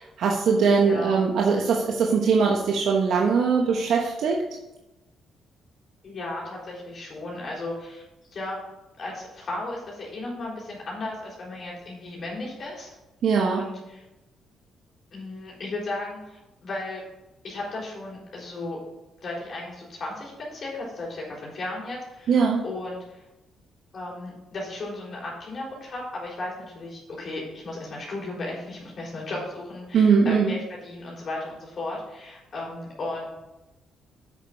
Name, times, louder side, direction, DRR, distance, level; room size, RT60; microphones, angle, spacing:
voice 1, 0.0-4.5 13.2-13.6 22.3-22.6 29.9-30.6, right 5 dB, 70° right, 1 dB, 1.1 m, -21 dB
voice 2, 0.8-1.3 6.0-8.0 8.3-8.6 9.0-12.9 13.4-14.0 15.1-17.0 17.4-18.8 19.2-23.3 23.9-33.3, left 2 dB, 50° left, -4 dB, 4.0 m, -35 dB
8.2 x 6.6 x 5.9 m, 0.98 s
cardioid pair, 90°, 0 cm